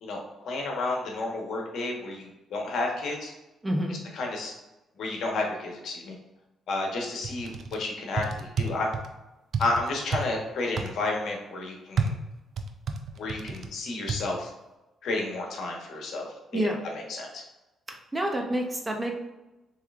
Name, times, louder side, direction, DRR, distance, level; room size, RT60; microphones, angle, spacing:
voice 1, 0.0-3.3 4.1-4.5 5.0-6.2 6.7-8.9 9.6-12.1 13.1-14.5 15.0-16.7 17.1-17.4, left 2 dB, 70° left, 0 dB, 1.2 m, -31 dB
voice 2, 3.6-4.0 16.5-16.8 17.9-19.1, right 1 dB, 15° right, 2 dB, 0.7 m, -28 dB
sound 1, 7.2-7.8 8.2-9.1 9.5-10.2 10.8-10.9 12.0-13.7 14.1-14.2, right 4 dB, 60° right, 0.5 m, -30 dB
6.6 x 3.2 x 2.4 m, 1.0 s
cardioid pair, 90°, 0 cm